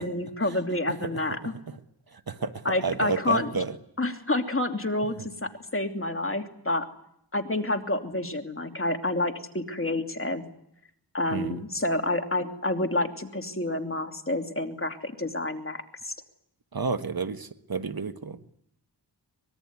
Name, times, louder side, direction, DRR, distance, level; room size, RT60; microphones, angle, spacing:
voice 1, 0.0-1.5 2.6-3.5 4.0-6.9 7.3-10.4 11.1-16.1, left 2 dB, 30° left, 5 dB, 2.8 m, -29 dB
voice 2, 2.1-3.8 5.2-5.3 11.3-11.6 16.7-18.4, right 4 dB, 55° right, 9 dB, 1.5 m, -31 dB
24.5 x 21.5 x 9.7 m, 0.73 s
wide cardioid pair, 75°, 43 cm